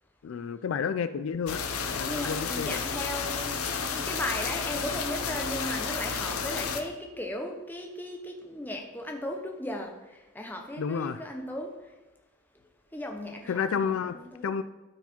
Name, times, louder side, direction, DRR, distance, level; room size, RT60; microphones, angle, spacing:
voice 1, 0.2-1.6 2.0-2.8 10.8-11.3 13.5-14.2 14.4-14.6, left 6 dB, 70° left, 12 dB, 0.3 m, -30 dB
sound 1, 1.5-6.8, left 5 dB, 85° left, 0.8 m, -32 dB
voice 2, 2.0-3.5 3.9-11.7 12.9-14.6, left 1 dB, 10° left, 2 dB, 0.9 m, -36 dB
12.5 x 4.8 x 4.4 m, 1.1 s
head